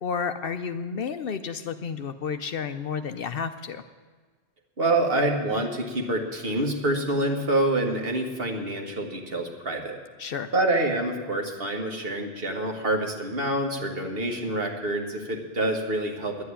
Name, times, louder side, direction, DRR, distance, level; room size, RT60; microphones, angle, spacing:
voice 1, 0.0-3.8 10.2-10.5, left 6 dB, 60° left, 9 dB, 0.7 m, -31 dB
voice 2, 4.8-10.0 10.5-16.4, right 2 dB, 55° right, 2 dB, 1.8 m, -26 dB
11.0 x 8.0 x 9.8 m, 1.5 s
omnidirectional pair, 1.1 m